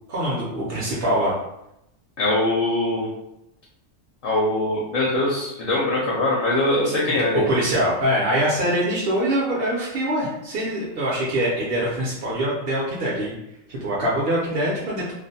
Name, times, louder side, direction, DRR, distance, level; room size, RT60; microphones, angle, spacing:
voice 1, 0.1-1.3 7.3-13.3 13.7-15.1, right 1 dB, 60° right, -6 dB, 0.7 m, -23 dB
voice 2, 2.2-3.1 4.2-7.5, left 1 dB, 60° left, -4 dB, 0.6 m, -22 dB
2.5 x 2.0 x 2.6 m, 0.85 s
omnidirectional pair, 1.4 m